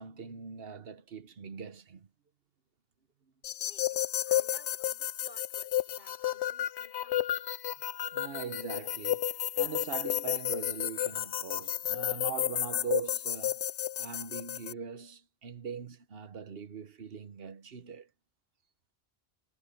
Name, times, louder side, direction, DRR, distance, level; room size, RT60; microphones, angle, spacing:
voice 1, 0.0-2.1 8.1-13.6 14.0-18.1, right 6 dB, 60° right, 1.3 m, -41 dB
sound 1, 3.4-14.7, left 12 dB, 80° left, 0.9 m, -32 dB
voice 2, 3.6-7.4, left 1 dB, 45° left, 5.1 m, -58 dB
omnidirectional pair, 1.1 m